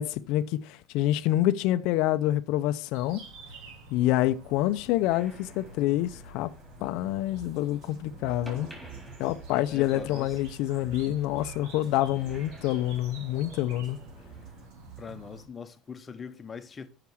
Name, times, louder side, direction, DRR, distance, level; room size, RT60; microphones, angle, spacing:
voice 1, 0.0-3.2 3.9-6.5 6.8-8.7 9.2-14.0, left 14 dB, 70° left, 0.5 m, -27 dB
sound 1, 2.9-15.5, right 2 dB, 80° right, 2.2 m, -49 dB
sound 2, 5.0-14.7, equal, 5° right, 3.8 m, -51 dB
sound 3, 7.3-15.3, right 8 dB, 55° right, 4.8 m, -49 dB
voice 2, 9.7-10.4 15.0-16.9, left 6 dB, 20° left, 0.9 m, -41 dB
7.1 x 5.8 x 6.2 m
cardioid pair, 140°, 0 cm